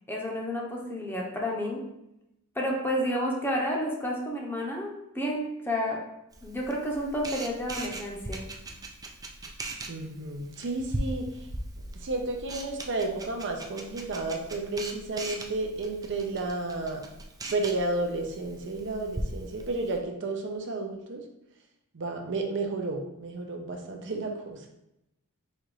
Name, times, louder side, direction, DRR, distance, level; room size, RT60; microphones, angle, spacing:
voice 1, 0.1-1.8 2.5-6.0 6.4-8.4, equal, 10° left, -2 dB, 0.8 m, -30 dB
Camera, 6.3-20.0, right 1 dB, 15° right, 0.4 m, -40 dB
voice 2, 9.9-11.5 11.9-17.0 17.5-21.2 21.9-24.7, right 2 dB, 55° right, 3 dB, 0.6 m, -32 dB
4.3 x 2.5 x 4.7 m, 0.85 s
head